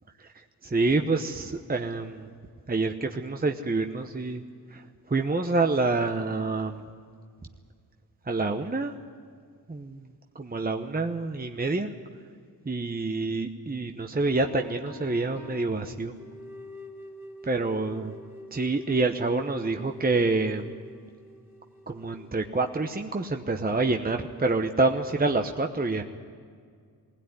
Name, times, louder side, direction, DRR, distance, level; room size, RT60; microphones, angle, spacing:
voice 1, 0.6-2.3 2.7-4.4 4.7-4.8 5.1-6.8 8.3-8.9 9.7-10.1 10.3-11.9 12.7-16.1 17.4-18.1 18.5-20.7 21.9-26.0, right 3 dB, 20° right, 5 dB, 1.0 m, -27 dB
Piano, 14.4-16.7, left 4 dB, 85° left, 5.2 m, -47 dB
sound 1, 16.2-22.9, equal, 5° right, 2.6 m, -46 dB
19.5 x 16.5 x 9.6 m, 2.1 s
cardioid pair, 60°, 41 cm